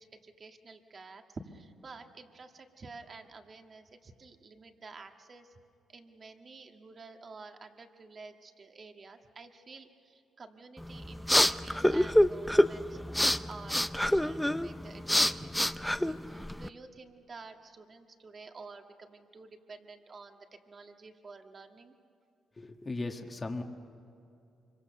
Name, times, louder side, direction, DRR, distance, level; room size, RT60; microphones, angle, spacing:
voice 1, 0.0-5.5 5.9-20.4 20.7-22.0, right 4 dB, 40° right, 5 dB, 1.8 m, -50 dB
sound 1, 10.8-16.7, left 1 dB, 5° left, 0.6 m, -27 dB
voice 2, 22.6-23.6, left 2 dB, 25° left, 4 dB, 1.6 m, -37 dB
25.0 x 23.5 x 6.8 m, 2.5 s
cardioid pair, 90°, 0 cm